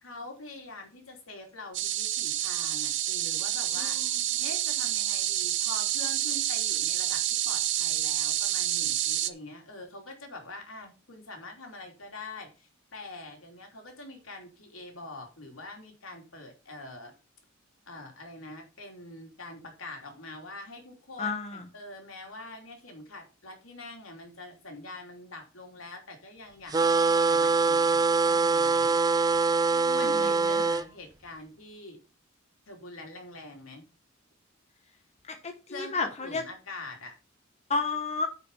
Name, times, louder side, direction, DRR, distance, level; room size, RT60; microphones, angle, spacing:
voice 1, 0.0-4.0 4.4-17.1 17.9-29.0 29.9-32.0 32.7-33.9 35.7-37.2, left 2 dB, 85° left, 2 dB, 3.2 m, -44 dB
sound 1, 1.7-9.3, right 13 dB, 60° right, 0.7 m, -28 dB
voice 2, 3.8-4.5 21.2-21.6 29.7-30.3 35.3-36.4 37.7-38.3, left 4 dB, 35° left, 5 dB, 1.1 m, -32 dB
sound 2, 26.7-30.8, right 4 dB, 20° right, 0.4 m, -23 dB
9.3 x 5.4 x 5.6 m, 0.32 s
head